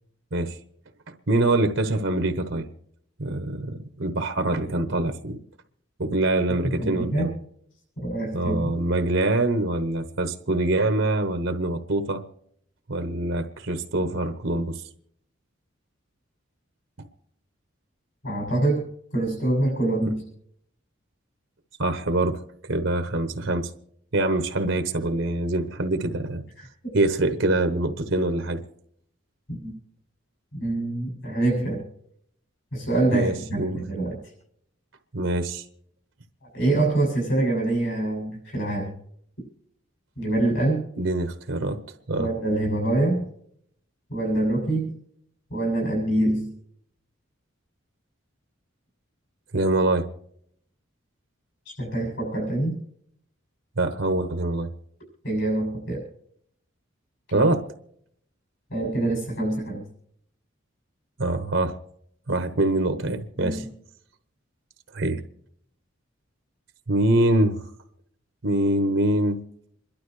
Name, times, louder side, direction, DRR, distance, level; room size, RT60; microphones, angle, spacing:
voice 1, 1.3-2.7 3.2-5.4 6.0-7.3 8.3-12.2 12.9-14.8 21.8-23.7 24.1-26.4 26.9-28.6 33.1-33.8 35.1-35.6 41.0-41.8 42.1-42.3 49.5-50.1 53.8-54.7 57.3-57.6 61.2-61.8 62.3-63.6 64.9-65.2 66.9-67.6 68.4-69.4, right 2 dB, 65° right, 8 dB, 1.0 m, -24 dB
voice 2, 6.7-7.3 8.0-8.6 18.2-20.2 26.6-26.9 29.5-29.7 30.5-31.8 32.7-34.2 36.4-39.0 40.2-40.8 42.2-43.3 44.1-45.0 45.5-46.5 51.7-52.8 55.2-56.0 57.3-57.5 58.7-59.9 63.4-63.6, right 2 dB, 65° left, -1 dB, 7.1 m, -25 dB
27.5 x 12.0 x 3.2 m, 0.69 s
head